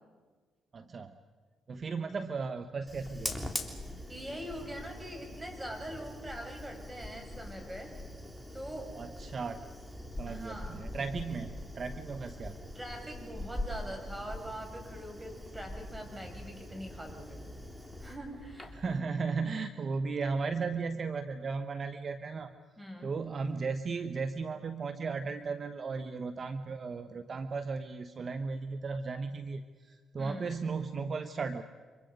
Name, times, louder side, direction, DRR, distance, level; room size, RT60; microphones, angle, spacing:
voice 1, 0.7-1.2 1.7-3.4 8.9-9.6 10.2-12.7 18.7-22.5 23.0-31.6, right 4 dB, 50° right, 10 dB, 1.0 m, -36 dB
Fire, 2.9-19.0, left 1 dB, 5° left, 3.2 m, -43 dB
voice 2, 4.1-7.9 8.5-9.0 10.3-10.8 12.7-17.4 18.0-18.8 22.8-23.1 30.2-30.5, equal, 15° right, 2 dB, 7.1 m, -43 dB
29.5 x 25.5 x 5.4 m, 1.4 s
supercardioid pair, 60°, 0 cm